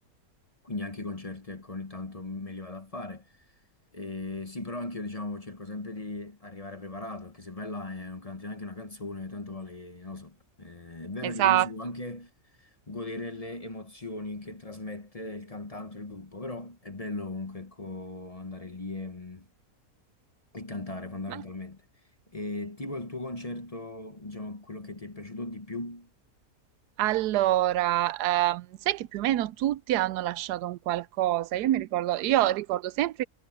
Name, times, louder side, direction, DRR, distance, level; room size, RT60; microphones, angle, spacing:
voice 1, 0.6-3.3 3.9-12.3 12.6-19.5 20.5-21.8 22.3-26.1, left 2 dB, 25° left, 1.0 m, -38 dB
voice 2, 11.2-11.7 21.3-21.4 27.0-33.2, right 14 dB, 90° right, 1.1 m, -26 dB
omnidirectional pair, 1.7 m